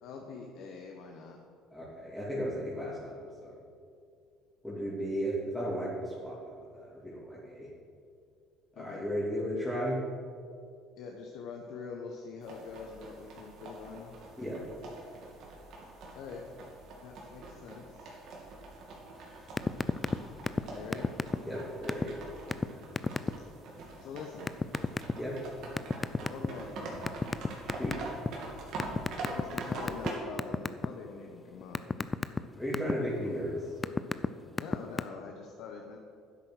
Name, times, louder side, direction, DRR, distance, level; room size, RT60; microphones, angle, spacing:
voice 1, 0.0-1.4 8.7-9.0 11.0-14.2 16.1-16.4 17.0-18.2 20.7-21.1 24.0-24.5 26.3-27.0 29.2-31.8 34.6-36.0, left 5 dB, 70° left, 1 dB, 1.1 m, -44 dB
voice 2, 1.7-3.3 4.6-7.7 8.8-10.0 14.4-14.6 21.4-22.2 25.2-25.3 27.6-27.9 32.6-33.6, equal, 5° left, -8 dB, 3.0 m, -35 dB
sound 1, 12.4-30.2, right 2 dB, 65° right, 2.7 m, -44 dB
sound 2, 19.6-20.2 20.5-20.6 20.9-21.6 21.9-22.1 22.5-22.6 23.0-23.3 24.5-25.1 25.8-26.6 27.1-28.3 28.8-30.1 30.4-30.9 31.3-32.9 33.5-34.3 34.5-35.0, left 4 dB, 20° left, 0.5 m, -29 dB
10.5 x 8.3 x 6.5 m, 2.4 s
supercardioid pair, 90°, 0 cm